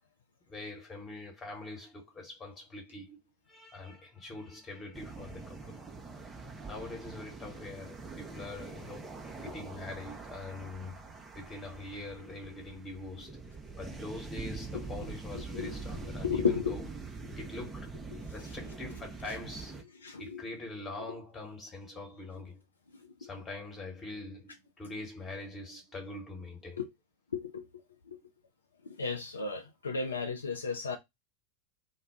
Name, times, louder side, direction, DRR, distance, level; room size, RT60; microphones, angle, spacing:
voice 1, 0.5-5.9 6.7-9.1 9.4-16.9 17.4-18.0 18.3-19.8 20.2-22.6 23.2-26.8, left 2 dB, 20° left, 1.1 m, -44 dB
sound 1, 4.9-19.8, right 4 dB, 15° right, 0.6 m, -44 dB
voice 2, 15.3-15.7 16.2-16.8 18.1-18.2 20.0-20.4 23.0-23.3 26.8-26.9 27.3-27.7 28.1-28.2 28.8-31.0, left 5 dB, 75° left, 0.4 m, -34 dB
2.2 x 2.1 x 3.5 m
figure-of-eight pair, 90°, 0 cm